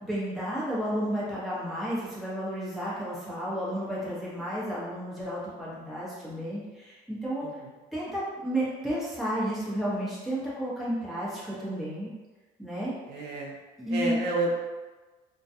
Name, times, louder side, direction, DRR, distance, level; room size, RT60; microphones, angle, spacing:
voice 1, 0.0-7.5 7.9-12.1 12.6-12.9 13.8-14.2, equal, ahead, -9 dB, 0.9 m, -32 dB
voice 2, 7.4-7.7 13.1-13.6 13.9-14.6, right 2 dB, 75° right, -2 dB, 0.6 m, -30 dB
2.3 x 2.2 x 2.7 m, 1.2 s
cardioid pair, 110°, 17 cm